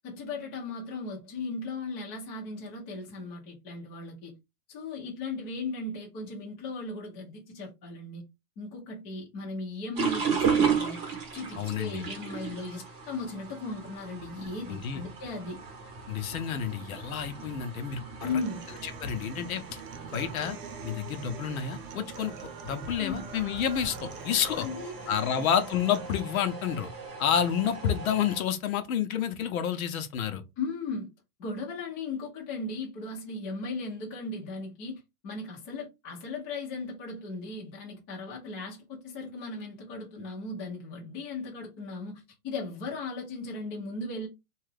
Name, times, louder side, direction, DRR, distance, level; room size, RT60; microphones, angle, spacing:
voice 1, 0.0-4.3 4.7-8.2 8.6-15.6 18.2-18.6 23.0-23.3 24.5-25.5 30.6-31.1 31.4-44.3, left 3 dB, 15° left, 0.6 m, -37 dB
sound 1, 10.0-28.4, right 6 dB, 20° right, 0.9 m, -35 dB
voice 2, 11.6-12.0 14.7-15.0 16.1-18.3 18.8-19.8 20.1-20.6 20.8-22.3 22.6-24.7 25.1-26.9 27.2-30.4, left 8 dB, 60° left, 0.7 m, -29 dB
Human voice / Acoustic guitar, 18.2-26.2, right 8 dB, 75° right, 0.8 m, -47 dB
2.9 x 2.3 x 3.2 m
hypercardioid pair, 160°, 46 cm